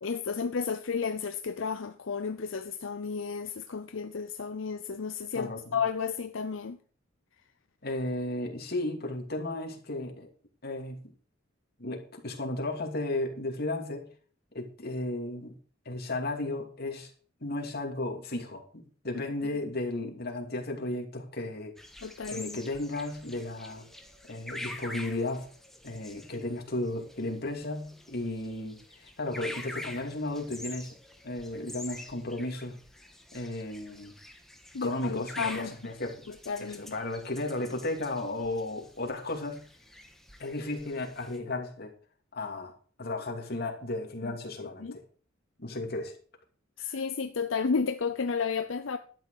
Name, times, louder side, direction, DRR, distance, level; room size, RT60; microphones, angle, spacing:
voice 1, 0.0-6.8 22.0-22.6 34.7-35.7 36.3-36.9 44.2-44.3 44.8-45.0 46.8-49.0, left 5 dB, 80° left, 0.6 m, -32 dB
voice 2, 5.3-5.8 7.8-10.3 10.6-11.0 11.8-14.1 14.5-15.5 15.8-17.1 17.4-21.7 22.3-23.9 24.3-25.5 25.8-30.9 31.2-32.8 33.3-34.1 34.8-36.1 36.6-39.6 40.4-41.9 42.3-42.7 43.0-45.0 45.6-46.1 46.8-46.9, left 2 dB, 50° left, 2.6 m, -34 dB
sound 1, 21.8-41.4, left 1 dB, ahead, 1.4 m, -46 dB
12.0 x 9.1 x 4.8 m
head